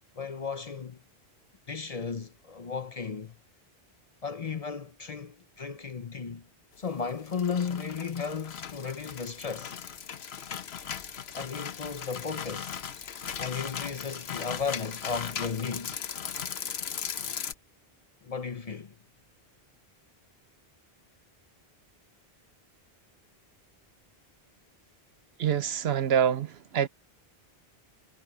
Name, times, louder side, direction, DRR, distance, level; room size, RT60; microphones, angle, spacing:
voice 1, 0.2-1.0 1.7-3.3 4.2-6.5 6.8-9.7 11.3-12.8 13.4-16.0 18.2-18.9, left 5 dB, 40° left, 0.7 m, -35 dB
sound 1, 7.1-17.5, left 8 dB, 80° left, 1.2 m, -38 dB
voice 2, 25.4-26.9, right 9 dB, 75° right, 1.0 m, -26 dB
omnidirectional pair, 1.1 m